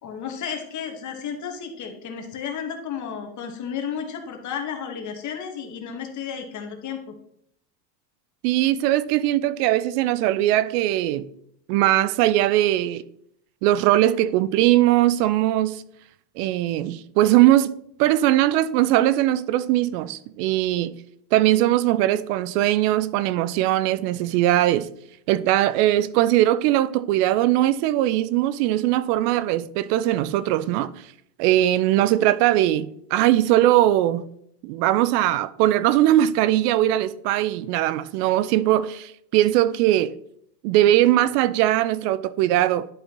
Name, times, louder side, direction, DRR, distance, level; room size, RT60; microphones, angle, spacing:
voice 1, 0.0-7.1, left 7 dB, 35° left, 1.3 m, -33 dB
voice 2, 8.4-11.3 11.7-13.0 13.6-15.8 16.4-17.7 18.0-21.0 21.3-24.9 25.3-30.9 31.4-34.2 34.6-40.1 40.6-42.9, right 14 dB, 75° right, 0.6 m, -20 dB
11.0 x 5.0 x 2.9 m
supercardioid pair, 130°, 48 cm